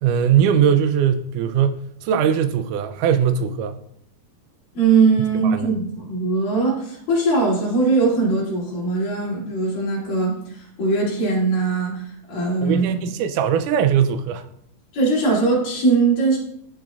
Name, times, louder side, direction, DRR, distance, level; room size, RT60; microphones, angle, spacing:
voice 1, 0.0-3.8 5.4-5.6 12.6-14.4, right 8 dB, 80° right, 1.8 m, -20 dB
voice 2, 4.7-12.9 14.9-16.4, right 3 dB, 80° left, 4.4 m, -20 dB
13.5 x 4.9 x 2.3 m
omnidirectional pair, 4.0 m